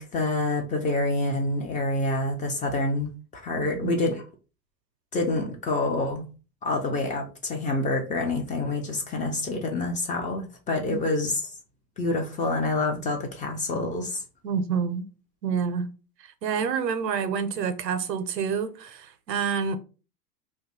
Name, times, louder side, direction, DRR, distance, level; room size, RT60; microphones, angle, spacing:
voice 1, 0.0-4.1 5.1-6.3 6.6-11.4 12.0-14.2, left 2 dB, 15° left, 0.4 m, -27 dB
voice 2, 3.6-3.9 14.4-15.0 15.4-15.9 16.4-19.8, right 6 dB, 85° right, 0.7 m, -28 dB
2.6 x 2.3 x 4.1 m
hypercardioid pair, 100°, 49 cm